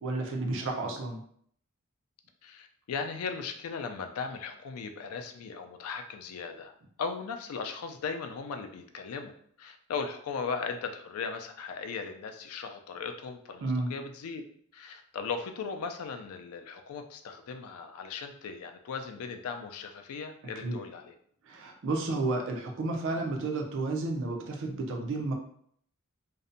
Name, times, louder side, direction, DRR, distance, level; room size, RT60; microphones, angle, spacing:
voice 1, 0.0-1.2 13.6-13.9 20.6-20.8 21.5-25.3, right 2 dB, 60° right, 2 dB, 0.5 m, -31 dB
voice 2, 2.4-6.7 7.0-9.3 9.6-14.4 14.7-21.1, left 5 dB, 75° left, 6 dB, 0.3 m, -37 dB
2.6 x 2.1 x 2.6 m, 0.63 s
head